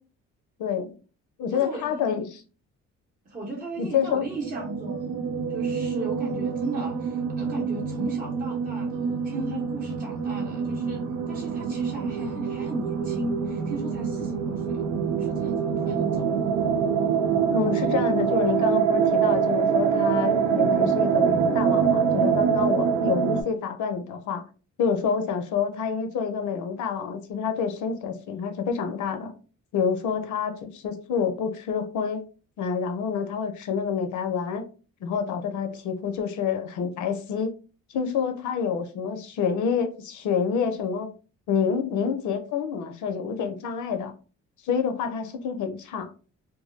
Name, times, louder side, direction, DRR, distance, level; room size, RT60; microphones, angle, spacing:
voice 1, 0.6-0.9 1.4-2.2 3.8-4.3 17.5-24.4 24.8-29.3 29.7-32.2 32.6-34.7 35.0-37.5 37.9-41.1 41.5-44.1 44.6-46.1, left 6 dB, 75° left, 0.5 m, -28 dB
voice 2, 1.5-2.3 3.3-5.2 5.5-14.9 15.1-16.5, right 1 dB, 30° right, 0.7 m, -36 dB
sound 1, 4.1-23.4, right 7 dB, 75° right, 0.5 m, -25 dB
2.2 x 2.0 x 3.0 m
cardioid pair, 90°, 30 cm